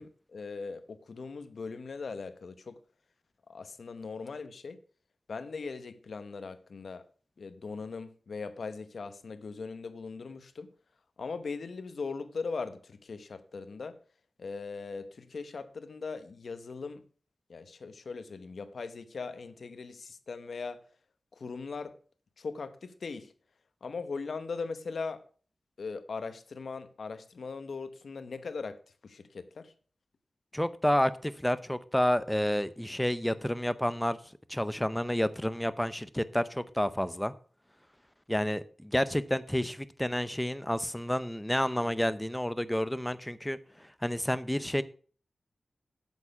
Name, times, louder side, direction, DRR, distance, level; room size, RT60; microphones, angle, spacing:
voice 1, 0.0-2.8 3.5-4.8 5.3-7.1 7.4-10.7 11.2-14.0 14.4-17.0 17.5-20.8 21.3-22.0 22.4-23.3 23.8-25.2 25.8-28.8 29.0-29.7, left 4 dB, 70° left, 1.0 m, -39 dB
voice 2, 30.5-34.2 34.5-37.3 38.3-44.8, equal, 5° left, 0.6 m, -30 dB
8.2 x 7.4 x 5.8 m
wide cardioid pair, 80°, 0 cm